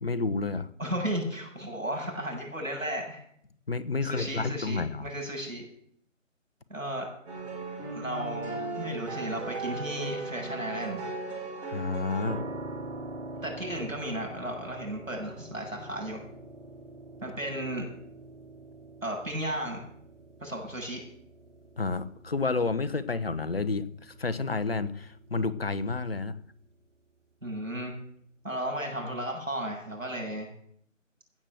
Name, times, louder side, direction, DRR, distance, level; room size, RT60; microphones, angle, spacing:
voice 1, 0.0-0.7 3.7-5.1 11.7-12.4 21.8-26.4, left 4 dB, 50° left, 14 dB, 1.1 m, -30 dB
voice 2, 0.8-3.2 4.0-5.6 6.7-7.1 7.9-11.1 13.4-16.2 17.2-17.9 19.0-19.8 20.4-21.0 27.4-27.9 28.4-30.5, right 1 dB, 85° right, 1 dB, 7.7 m, -34 dB
sound 1, 7.3-12.3, right 3 dB, 5° right, 2.2 m, -37 dB
sound 2, 12.2-27.1, right 2 dB, 65° right, 1.9 m, -45 dB
16.5 x 7.9 x 8.0 m, 0.66 s
figure-of-eight pair, 155°, 39 cm